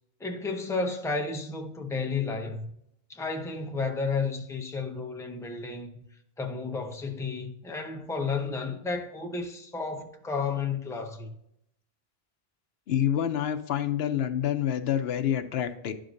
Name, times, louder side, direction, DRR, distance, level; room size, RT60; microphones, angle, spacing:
voice 1, 0.2-2.6 3.1-6.0 6.4-11.4, left 4 dB, 5° left, 0.6 m, -32 dB
voice 2, 12.9-15.9, left 10 dB, 75° left, 0.9 m, -27 dB
11.0 x 5.1 x 2.6 m
omnidirectional pair, 1.0 m